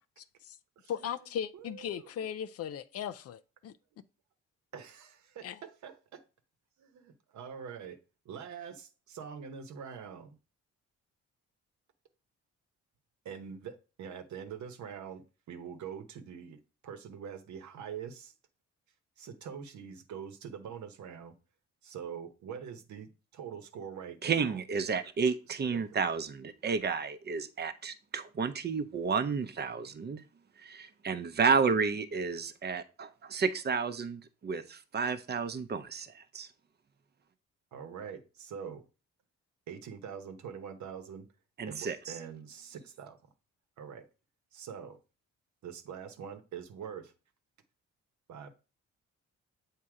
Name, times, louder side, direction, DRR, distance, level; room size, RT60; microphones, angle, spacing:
voice 1, 0.2-0.6 0.9-3.7 5.4-5.6, left 9 dB, 55° left, 0.5 m, -38 dB
voice 2, 0.8-1.1 1.5-2.1 3.9-4.0 4.7-6.2 6.8-8.0 8.2-10.4 13.2-18.3 19.2-21.3 21.8-24.6 25.5-26.0 37.7-38.9 39.7-41.3 41.7-43.2 43.8-44.1 44.5-45.0 45.6-47.1 48.3-48.5, right 7 dB, 70° right, 1.0 m, -44 dB
voice 3, 24.2-30.2 30.6-36.1 36.3-36.5 41.6-42.0, right 5 dB, 35° right, 0.7 m, -31 dB
7.5 x 2.8 x 4.8 m
cardioid pair, 90°, 30 cm